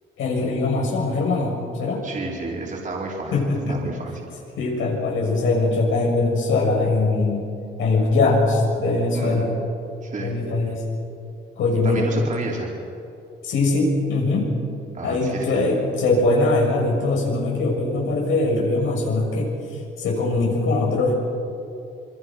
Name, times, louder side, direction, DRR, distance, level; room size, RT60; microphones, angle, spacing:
voice 1, 0.2-2.0 3.3-3.9 4.6-7.4 7.8-9.5 10.2-10.8 11.6-12.1 13.4-14.5 15.0-19.5 20.0-21.1, left 2 dB, 80° left, -1 dB, 6.6 m, -21 dB
voice 2, 2.0-4.1 9.1-9.5 10.0-10.4 10.6-10.7 11.8-12.7 14.9-15.6, right 3 dB, 40° right, -2 dB, 4.9 m, -31 dB
27.5 x 23.0 x 6.3 m, 2.7 s
cardioid pair, 90°, 20 cm